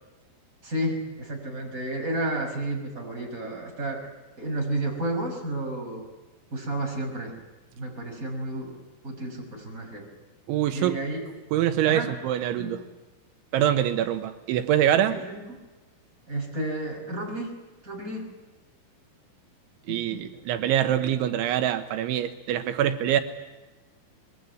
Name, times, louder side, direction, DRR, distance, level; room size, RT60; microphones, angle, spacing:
voice 1, 0.6-4.1 4.4-6.1 6.5-7.3 7.8-8.7 9.0-10.1 10.7-11.2 11.9-12.1 12.6-12.7 15.0-15.6 16.3-17.5 17.8-18.3 19.9-20.2, right 1 dB, 15° right, 1 dB, 6.0 m, -31 dB
voice 2, 10.5-11.0 11.5-12.8 13.5-15.2 19.9-23.2, right 11 dB, 85° right, 9 dB, 3.5 m, -24 dB
25.5 x 21.5 x 9.5 m, 1.2 s
omnidirectional pair, 5.4 m